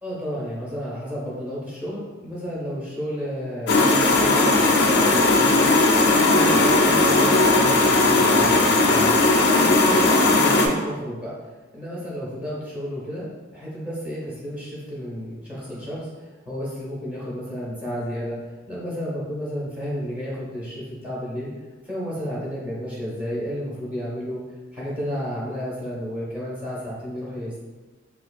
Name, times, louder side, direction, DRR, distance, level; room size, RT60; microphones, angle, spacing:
voice 1, 0.0-9.1 9.5-11.3 11.7-13.3 13.5-16.1 16.4-18.4 18.7-21.5 21.8-24.4 24.7-27.6, equal, 10° right, -7 dB, 1.1 m, -31 dB
sound 1, 3.7-10.7, left 2 dB, 55° left, 0.4 m, -17 dB
5.1 x 2.3 x 2.3 m, 1.2 s
head